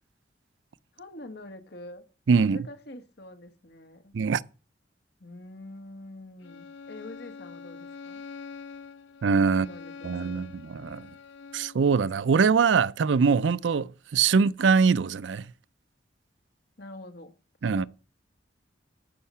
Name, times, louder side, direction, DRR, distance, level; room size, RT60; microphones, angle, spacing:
voice 1, 0.9-2.0 2.4-4.1 5.2-8.3 9.4-10.5 16.8-17.4 17.6-17.9, left 1 dB, 65° left, 1.7 m, -45 dB
voice 2, 2.3-2.6 4.1-4.4 9.2-9.7 10.0-11.1 11.5-15.4 17.6-17.9, right 5 dB, 75° right, 0.4 m, -23 dB
Bowed string instrument, 6.4-11.9, left 5 dB, 80° left, 0.6 m, -45 dB
14.0 x 5.7 x 5.6 m
head